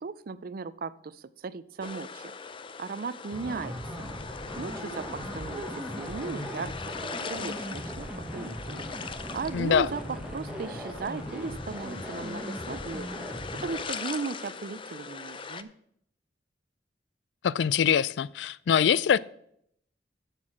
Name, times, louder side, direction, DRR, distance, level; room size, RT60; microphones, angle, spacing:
voice 1, 0.0-2.3 2.8-4.1 4.6-5.6 6.0-8.9 9.3-13.1 13.6-15.7, right 4 dB, 55° right, 0.5 m, -37 dB
sound 1, 1.8-15.6, left 5 dB, 30° left, 0.5 m, -41 dB
sound 2, 3.3-13.8, equal, 5° right, 1.2 m, -39 dB
voice 2, 9.5-9.9 17.4-19.2, left 8 dB, 90° left, 0.3 m, -23 dB
8.3 x 6.8 x 6.0 m
head